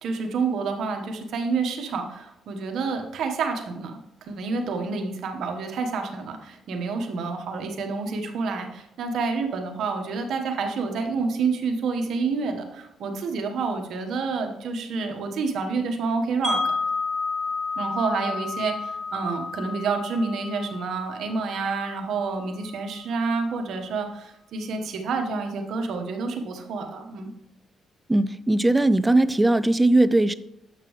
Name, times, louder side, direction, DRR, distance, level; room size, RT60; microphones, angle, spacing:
voice 1, 0.0-3.9 4.2-16.6 17.8-27.3, right 4 dB, 70° right, 1.2 m, -28 dB
Wind chime, 16.4-22.4, left 4 dB, 5° left, 2.4 m, -31 dB
voice 2, 28.1-30.3, right 2 dB, 15° right, 0.4 m, -19 dB
8.2 x 6.0 x 3.1 m
cardioid pair, 90°, 0 cm